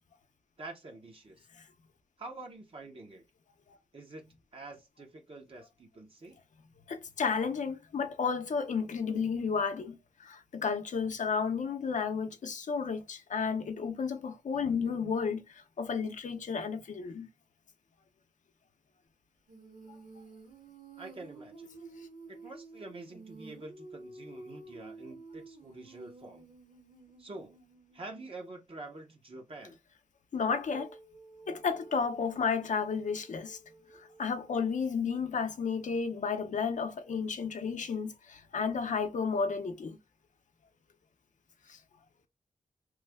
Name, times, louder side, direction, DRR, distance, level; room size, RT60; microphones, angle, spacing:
voice 1, 0.6-1.5 2.2-3.2 3.9-6.4 21.0-21.7 22.3-26.4 27.2-27.6 27.9-29.8, right 2 dB, 40° right, 0.7 m, -47 dB
voice 2, 6.9-17.3 30.3-30.9 31.5-33.6 34.0-40.0 41.7-41.8, left 5 dB, 65° left, 0.6 m, -32 dB
Female singing, 19.5-28.4 30.6-34.8, right 3 dB, 65° right, 1.7 m, -52 dB
3.1 x 2.1 x 3.4 m
wide cardioid pair, 100°, 14 cm